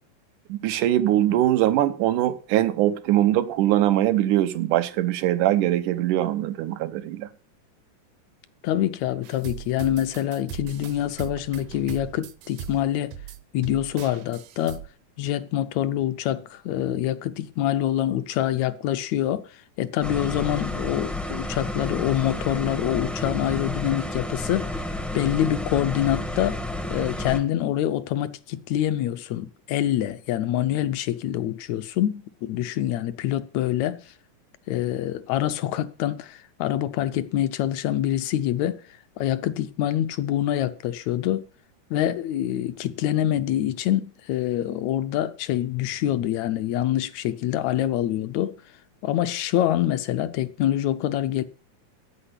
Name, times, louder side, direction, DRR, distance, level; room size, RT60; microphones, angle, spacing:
voice 1, 0.5-7.3, right 13 dB, 90° right, 2.4 m, -22 dB
voice 2, 8.6-13.1 13.5-14.8 15.2-24.8 25.1-26.6 26.9-34.0 34.7-38.8 39.2-41.5 41.9-48.6 49.0-51.4, left 12 dB, 75° left, 1.8 m, -25 dB
sound 1, 9.2-14.9, right 10 dB, 70° right, 1.9 m, -39 dB
sound 2, 20.0-27.4, left 1 dB, ahead, 0.4 m, -31 dB
10.0 x 8.8 x 8.1 m
omnidirectional pair, 3.5 m